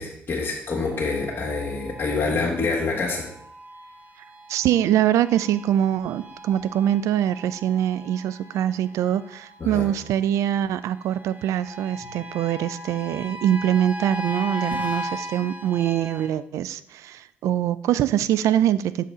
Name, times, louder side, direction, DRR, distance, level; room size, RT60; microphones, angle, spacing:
voice 1, 0.0-3.3 9.6-9.9 12.0-12.1, left 3 dB, 40° left, -5 dB, 1.7 m, -26 dB
sound 1, 0.9-16.3, equal, 30° right, 1.2 m, -38 dB
voice 2, 4.5-19.0, right 11 dB, 65° right, 15 dB, 0.3 m, -23 dB
6.6 x 3.9 x 4.9 m, 0.68 s
hypercardioid pair, 50°, 6 cm